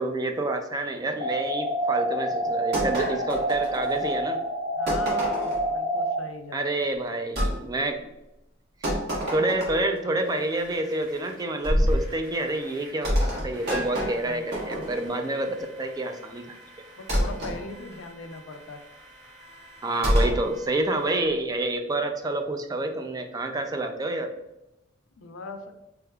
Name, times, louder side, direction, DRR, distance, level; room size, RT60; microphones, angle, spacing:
voice 1, 0.0-4.4 6.5-8.0 8.8-9.0 9.3-13.2 13.4-16.5 19.8-24.3, right 2 dB, 20° right, 5 dB, 0.3 m, -28 dB
sound 1, 1.2-6.2, right 1 dB, 40° right, 0.8 m, -28 dB
sound 2, 2.7-4.2 4.9-5.7 7.4-7.5 8.8-10.0 11.6-12.1 13.0-15.2 17.1-17.6 20.0-20.4, equal, 55° right, 1.3 m, -26 dB
voice 2, 4.8-6.8 14.1-14.9 17.0-18.8 25.2-25.7, left 3 dB, 75° left, 7 dB, 0.5 m, -40 dB
sound 3, 10.2-21.1, right 1 dB, 80° right, 0.9 m, -50 dB
3.6 x 3.4 x 2.3 m, 0.89 s
head